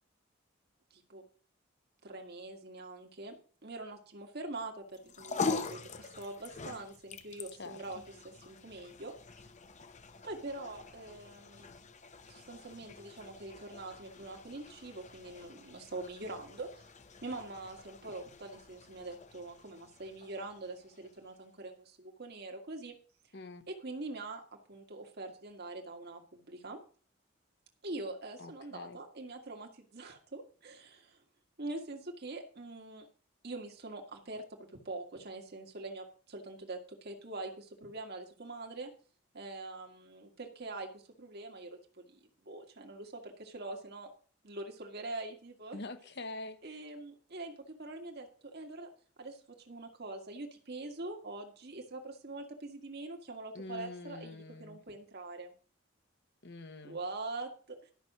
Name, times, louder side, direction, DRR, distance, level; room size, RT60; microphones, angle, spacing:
voice 1, 0.9-1.2 2.0-8.0 8.5-9.1 10.2-11.7 12.3-16.8 17.2-23.0 23.7-24.4 24.7-26.8 27.8-31.2 31.6-33.1 33.4-34.4 34.7-38.9 39.3-41.8 42.1-44.1 44.4-45.8 46.6-48.9 49.2-55.5 56.8-57.9, right 2 dB, 55° right, 1.8 m, -44 dB
sound 1, 4.9-21.4, left 4 dB, 40° left, 0.9 m, -44 dB
voice 2, 28.4-29.0 45.7-46.8 53.5-54.8 56.4-57.0, left 2 dB, 60° left, 1.3 m, -45 dB
12.0 x 6.1 x 6.0 m
head